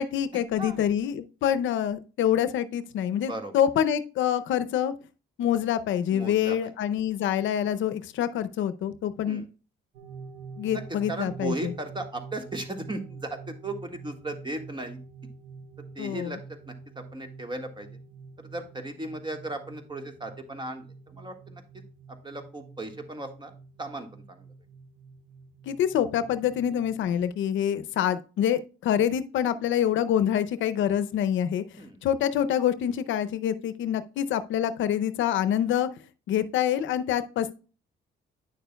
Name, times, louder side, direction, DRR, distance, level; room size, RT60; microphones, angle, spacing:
voice 1, 0.0-4.9 5.4-9.4 10.6-11.7 16.0-16.4 25.7-31.6 32.0-35.9 36.3-37.6, left 10 dB, 75° left, 12 dB, 0.6 m, -26 dB
voice 2, 6.1-6.7 9.3-9.4 10.7-10.8 11.1-15.0 15.9-17.9 18.5-21.6 22.2-23.5 23.8-24.4 31.8-32.0, right 2 dB, 25° right, 6 dB, 1.6 m, -36 dB
sound 1, 9.9-27.1, right 4 dB, 80° right, 1.5 m, -46 dB
9.4 x 6.6 x 2.2 m, 0.34 s
cardioid pair, 90°, 20 cm